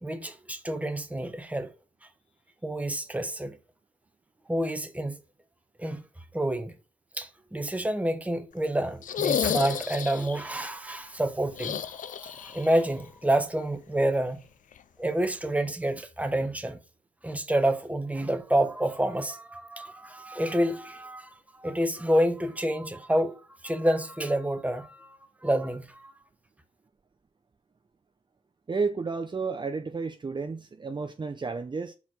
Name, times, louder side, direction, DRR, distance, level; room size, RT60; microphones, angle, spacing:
voice 1, 0.0-1.7 2.6-3.6 4.5-5.2 5.8-6.0 6.3-6.7 7.2-11.9 12.2-14.5 15.0-16.8 17.2-26.1, right 1 dB, 10° right, 1.1 m, -28 dB
sound 1, 9.0-10.4 11.5-12.7 13.0-13.1 14.7-14.8, left 9 dB, 75° left, 0.4 m, -31 dB
voice 2, 28.7-31.9, right 4 dB, 35° right, 0.6 m, -31 dB
5.6 x 4.4 x 6.0 m
cardioid pair, 70°, 14 cm